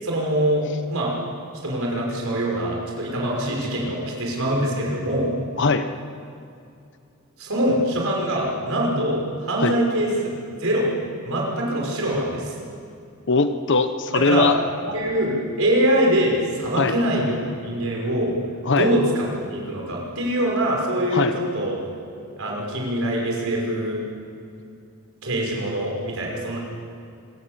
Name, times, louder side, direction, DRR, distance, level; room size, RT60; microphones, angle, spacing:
voice 1, 0.0-0.6 0.9-1.1 1.5-5.3 7.4-10.3 10.6-10.9 11.2-12.5 14.1-14.5 14.8-18.4 18.8-21.8 22.4-24.0 25.2-26.6, right 1 dB, 65° right, -2 dB, 5.8 m, -23 dB
voice 2, 5.6-5.9 9.6-9.7 13.3-14.6 16.7-16.9 18.6-18.9 21.1-21.3, left 3 dB, 55° left, 9 dB, 1.0 m, -20 dB
26.0 x 14.5 x 8.1 m, 2.5 s
head